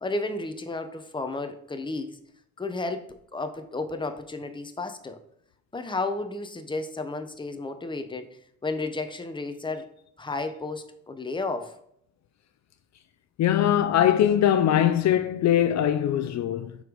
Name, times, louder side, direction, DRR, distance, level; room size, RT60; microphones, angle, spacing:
voice 1, 0.0-2.2 2.6-5.2 5.7-8.3 8.6-9.9 10.2-11.7, left 3 dB, 15° left, 0.9 m, -32 dB
voice 2, 13.4-16.8, left 10 dB, 65° left, 0.6 m, -21 dB
5.8 x 4.8 x 5.2 m
cardioid pair, 90°, 30 cm